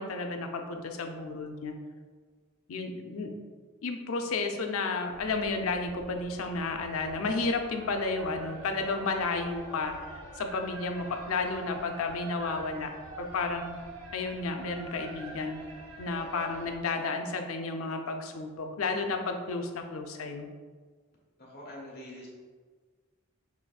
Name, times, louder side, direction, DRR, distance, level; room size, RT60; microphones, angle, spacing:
voice 1, 0.0-1.7 2.7-3.3 3.8-9.9 10.4-12.9 13.2-13.8 14.1-15.6 16.0-20.5, left 3 dB, 80° left, 4 dB, 0.5 m, -32 dB
sound 1, 5.1-16.8, right 2 dB, 70° right, 0.7 m, -46 dB
voice 2, 21.4-22.3, left 1 dB, 50° left, -5 dB, 1.3 m, -44 dB
6.1 x 3.3 x 2.3 m, 1.5 s
head